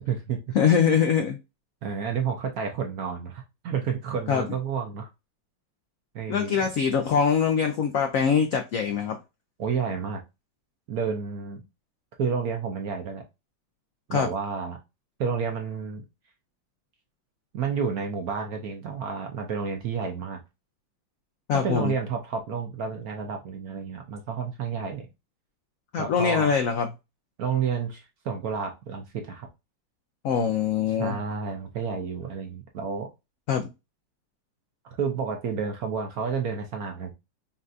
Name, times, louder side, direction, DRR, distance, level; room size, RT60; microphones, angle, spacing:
voice 1, 0.0-0.4 1.8-5.1 6.1-6.7 9.6-10.2 10.9-11.6 12.2-13.2 14.1-14.8 15.2-16.0 17.5-20.4 21.5-25.1 26.0-26.5 27.4-29.5 31.0-33.1 34.8-37.1, right 6 dB, 65° right, 1.0 m, -30 dB
voice 2, 0.5-1.4 4.3-4.4 6.3-9.2 14.1-14.3 21.5-21.9 25.9-26.9 30.2-31.1 33.5-33.7, left 7 dB, 85° left, 0.7 m, -23 dB
5.5 x 2.5 x 2.5 m
omnidirectional pair, 2.1 m